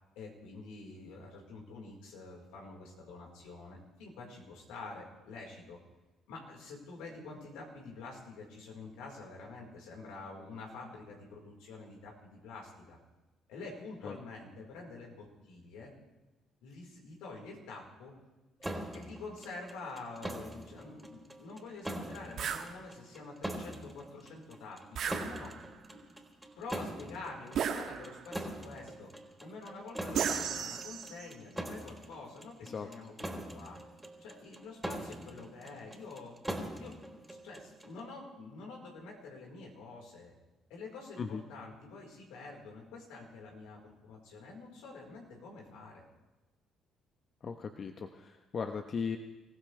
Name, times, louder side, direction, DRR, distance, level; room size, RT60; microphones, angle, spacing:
voice 1, 0.2-5.8 6.3-13.0 13.5-15.9 16.6-18.1 18.6-25.6 25.9-26.0 26.6-29.1 29.4-33.1 33.5-33.8 34.2-36.4 36.8-37.2 37.4-40.3 40.7-46.0, left 3 dB, 85° left, 0 dB, 4.5 m, -47 dB
sound 1, 18.6-38.0, right 1 dB, 10° right, 3.6 m, -43 dB
sound 2, 22.4-22.7 24.9-25.8 27.5-28.3 30.1-31.3, right 7 dB, 65° right, 1.7 m, -35 dB
voice 2, 47.4-49.2, left 6 dB, 50° left, 6 dB, 1.1 m, -37 dB
25.5 x 15.5 x 3.4 m, 1.1 s
supercardioid pair, 65°, 0 cm